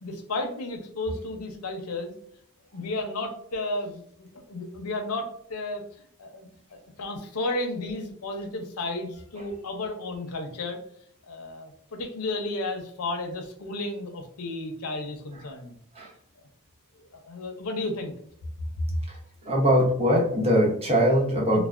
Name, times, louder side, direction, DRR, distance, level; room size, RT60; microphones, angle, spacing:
voice 1, 0.0-2.1 2.7-5.8 6.2-6.5 7.0-10.8 11.3-15.7 17.0-18.1 21.5-21.7, left 2 dB, 80° left, 4 dB, 0.6 m, -33 dB
voice 2, 19.4-21.7, equal, 25° right, -2 dB, 0.8 m, -22 dB
3.2 x 2.1 x 2.4 m, 0.64 s
head